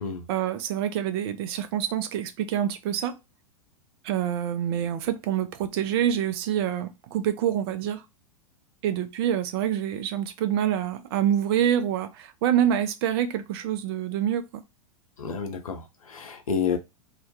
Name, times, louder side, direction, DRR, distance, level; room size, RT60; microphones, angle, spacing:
voice 1, 0.3-3.2 4.0-8.0 8.8-14.6, right 10 dB, 45° right, 0.4 m, -26 dB
voice 2, 15.2-16.8, left 6 dB, 75° left, 0.6 m, -30 dB
2.3 x 2.2 x 2.7 m
figure-of-eight pair, 95°, 18 cm